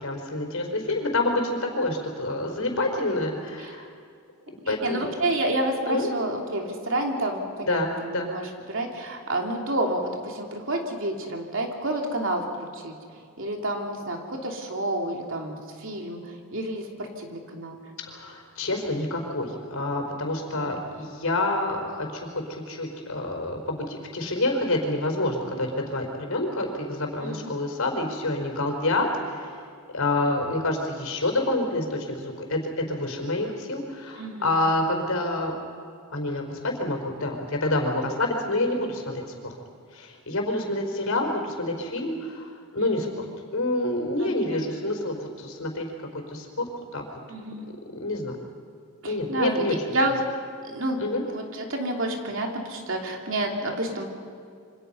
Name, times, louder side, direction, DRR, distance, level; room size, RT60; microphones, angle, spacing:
voice 1, 0.0-3.8 4.7-5.1 5.9-6.1 7.6-8.3 18.0-29.6 29.9-35.6 36.1-39.5 39.9-43.3 43.5-45.9 46.1-46.6 46.9-47.0 47.9-48.4 49.1-49.7 51.0-51.2, left 2 dB, 70° left, 3 dB, 4.4 m, -28 dB
voice 2, 4.7-12.9 13.4-17.8 20.5-20.8 27.2-27.5 34.2-34.5 40.5-40.8 42.8-43.1 44.2-44.6 47.3-47.6 49.0-49.7 49.9-50.2 50.6-51.0 51.3-54.1, right 1 dB, 60° right, 2 dB, 3.0 m, -30 dB
27.5 x 25.0 x 5.6 m, 2.2 s
head